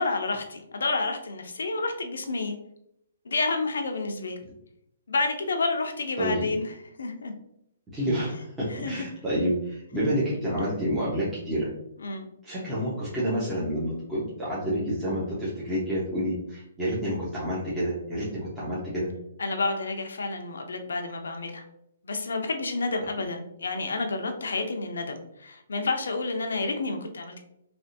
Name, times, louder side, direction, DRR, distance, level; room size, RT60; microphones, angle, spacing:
voice 1, 0.0-2.5 3.3-4.4 5.1-7.3 8.7-9.1 12.0-12.3 19.4-21.6 22.0-27.4, left 3 dB, 80° left, 5 dB, 0.6 m, -30 dB
voice 2, 7.9-11.7 12.4-19.1, equal, 10° right, -10 dB, 1.0 m, -29 dB
3.4 x 2.4 x 2.6 m, 0.77 s
hypercardioid pair, 145°, 0 cm